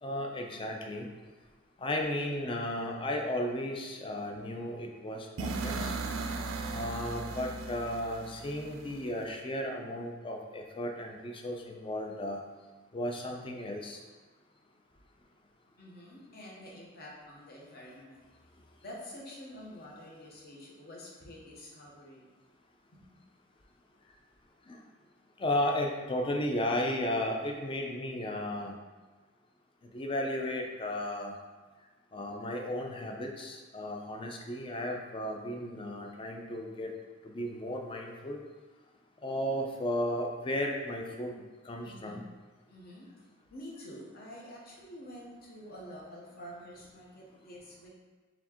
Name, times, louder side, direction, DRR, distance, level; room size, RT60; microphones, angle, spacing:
voice 1, 0.0-1.1 1.8-5.9 6.7-12.4 12.9-14.0 24.7-24.8 25.4-28.7 29.9-31.3 32.1-36.9 37.2-38.4 39.2-41.3 41.7-42.2, left 1 dB, 25° left, 2 dB, 0.4 m, -34 dB
sound 1, 5.4-9.3, right 3 dB, 85° right, 0.4 m, -37 dB
voice 2, 15.8-18.3 18.8-22.4 22.9-23.1 41.8-42.2 42.7-43.1 43.5-47.9, equal, 50° left, -3 dB, 1.0 m, -48 dB
4.3 x 3.5 x 2.9 m, 1.3 s
head